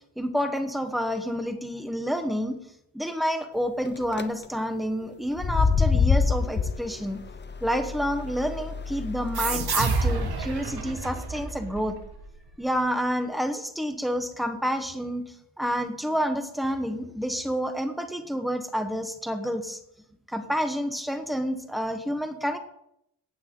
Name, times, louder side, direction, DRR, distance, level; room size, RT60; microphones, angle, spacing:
voice 1, 0.2-2.6 2.9-7.2 7.6-12.0 12.6-19.8 20.3-22.6, equal, ahead, 7 dB, 1.1 m, -29 dB
sound 1, 3.8-4.2 5.3-9.7, left 5 dB, 25° left, 0.6 m, -26 dB
sound 2, 9.3-12.6, right 4 dB, 55° right, 1.6 m, -29 dB
16.5 x 9.0 x 3.8 m, 0.78 s
wide cardioid pair, 140°, 46 cm